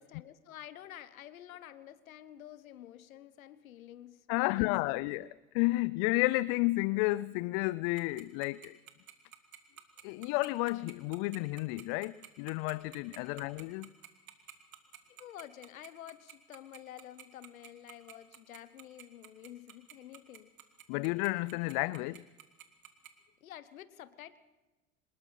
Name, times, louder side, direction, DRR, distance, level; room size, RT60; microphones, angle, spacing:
voice 1, 0.0-5.2 13.1-13.4 15.1-20.5 23.4-24.4, left 12 dB, 90° left, 1.2 m, -50 dB
voice 2, 4.3-5.3 5.5-8.8 10.0-13.9 20.9-22.2, left 21 dB, 65° left, 0.6 m, -31 dB
Tick-tock, 8.0-23.1, right 11 dB, 90° right, 2.1 m, -50 dB
26.0 x 19.5 x 5.8 m
hypercardioid pair, 70°, 40 cm